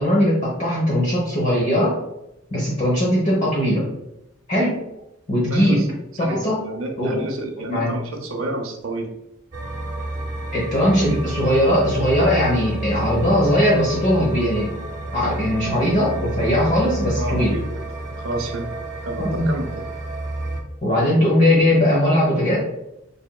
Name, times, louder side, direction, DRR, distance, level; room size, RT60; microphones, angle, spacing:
voice 1, 0.0-2.0 2.5-3.8 4.5-4.8 5.3-5.9 6.2-6.6 7.0-7.2 7.7-7.9 10.5-14.7 15.1-17.5 19.2-19.5 20.8-22.6, left 1 dB, 35° left, -5 dB, 1.0 m, -19 dB
voice 2, 5.5-5.9 6.2-9.1 17.2-17.6 18.2-18.7 19.0-19.7, right 2 dB, 80° right, 3 dB, 0.7 m, -29 dB
sound 1, 9.5-20.6, right 2 dB, 35° right, 0.7 m, -30 dB
4.1 x 3.5 x 2.2 m, 0.87 s
head